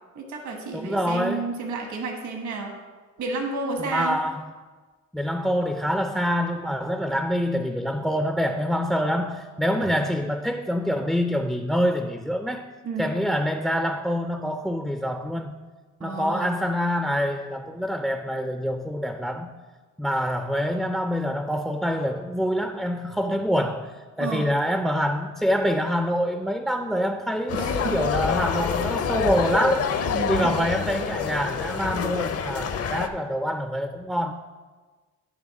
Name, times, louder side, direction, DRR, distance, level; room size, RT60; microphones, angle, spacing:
voice 1, 0.1-2.7 3.2-4.2 12.8-13.1 16.0-16.5 24.2-24.5 27.5-28.0 30.1-30.5, right 3 dB, 70° right, 2 dB, 1.4 m, -31 dB
voice 2, 0.7-1.5 3.8-4.4 5.1-12.7 13.0-15.5 16.0-19.5 20.0-34.3, equal, ahead, 7 dB, 0.3 m, -26 dB
sound 1, 27.5-33.1, left 7 dB, 55° left, 0.6 m, -27 dB
10.5 x 3.5 x 5.8 m, 1.4 s
cardioid pair, 90°, 30 cm